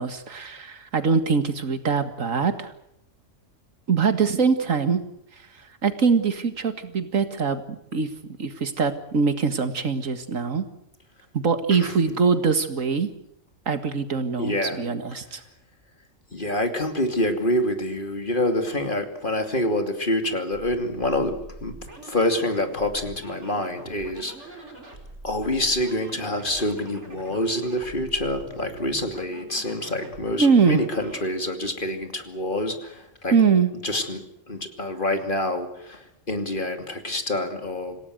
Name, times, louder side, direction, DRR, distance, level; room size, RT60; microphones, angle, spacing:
voice 1, 0.0-2.7 3.9-5.0 5.8-8.1 8.4-10.6 11.3-13.1 13.7-15.4 30.4-30.8 33.3-33.7, right 5 dB, 80° right, 9 dB, 2.2 m, -23 dB
voice 2, 11.7-12.2 14.4-14.8 16.3-21.8 22.0-24.7 25.2-33.3 33.8-38.0, left 1 dB, 40° left, 6 dB, 2.9 m, -27 dB
sound 1, 20.5-31.3, right 2 dB, 60° right, 4.8 m, -43 dB
27.0 x 17.5 x 8.0 m, 0.77 s
omnidirectional pair, 1.3 m